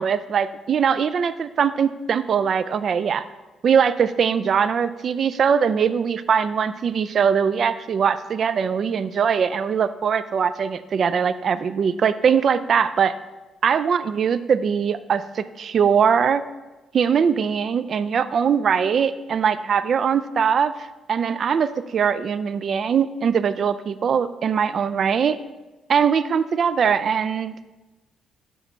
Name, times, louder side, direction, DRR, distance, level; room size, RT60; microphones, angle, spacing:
voice 1, 0.0-3.2 3.6-13.1 13.6-16.4 16.9-20.7 21.1-25.4 25.9-27.5, right 7 dB, 55° right, 14 dB, 0.4 m, -21 dB
7.3 x 5.8 x 5.5 m, 1.1 s
cardioid pair, 90°, 0 cm